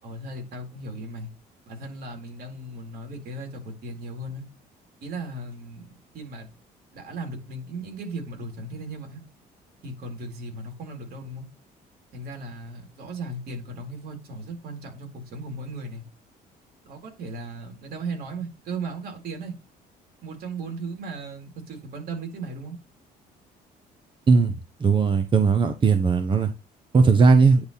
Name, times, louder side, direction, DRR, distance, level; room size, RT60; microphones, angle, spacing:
voice 1, 0.0-1.3 1.7-4.5 5.0-6.5 6.9-9.2 9.8-11.5 12.1-16.0 16.8-19.5 20.2-22.8, right 2 dB, 65° right, 4.1 m, -36 dB
voice 2, 24.8-26.5 26.9-27.6, right 4 dB, 30° right, 1.0 m, -18 dB
10.0 x 4.2 x 3.6 m
cardioid pair, 110°, 17 cm